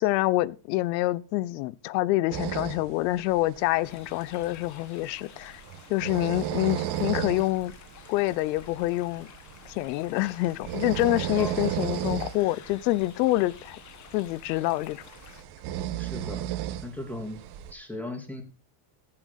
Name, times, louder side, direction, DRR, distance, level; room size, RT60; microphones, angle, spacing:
voice 1, 0.0-5.6 5.9-7.7 8.1-9.3 9.6-13.8 14.1-15.0, left 17 dB, 90° left, 0.9 m, -26 dB
sound 1, 2.3-17.7, right 11 dB, 50° right, 1.5 m, -35 dB
sound 2, 3.8-15.4, left 10 dB, 35° left, 1.4 m, -51 dB
voice 2, 11.3-11.8 16.0-16.5 16.8-17.4 17.7-18.4, left 1 dB, 5° left, 3.0 m, -37 dB
15.0 x 8.9 x 4.1 m
cardioid pair, 145°, 49 cm